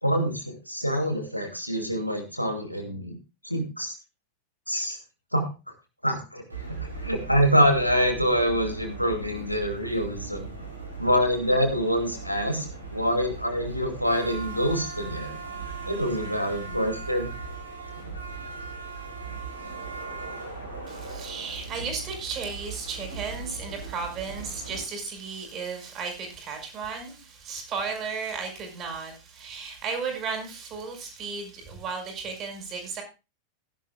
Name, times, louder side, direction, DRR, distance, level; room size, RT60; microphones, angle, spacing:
voice 1, 0.0-3.2 3.4-3.9 4.7-5.0 5.3-5.5 6.0-6.4 6.7-6.8 7.0-10.5 11.0-12.7 12.9-15.4 15.8-17.3, equal, 90° left, 3 dB, 2.4 m, -25 dB
sound 1, 6.5-24.8, right 4 dB, 85° right, 4.6 m, -38 dB
voice 2, 20.9-33.0, right 5 dB, 30° right, 4 dB, 5.2 m, -34 dB
16.5 x 11.0 x 2.3 m, 0.29 s
figure-of-eight pair, 90°, 0 cm